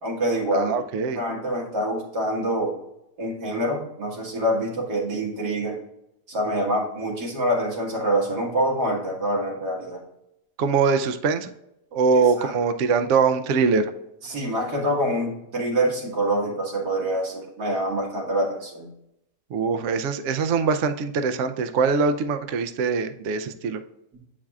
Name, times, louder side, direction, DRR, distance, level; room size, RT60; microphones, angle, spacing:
voice 1, 0.0-0.7 1.1-2.8 3.2-5.8 6.3-10.0 12.4-12.6 14.2-18.9, right 1 dB, 85° right, -2 dB, 2.2 m, -26 dB
voice 2, 0.5-1.2 10.6-11.5 11.9-13.9 19.5-23.8, right 5 dB, 70° right, 9 dB, 0.7 m, -22 dB
8.6 x 4.8 x 2.3 m, 0.83 s
omnidirectional pair, 1.7 m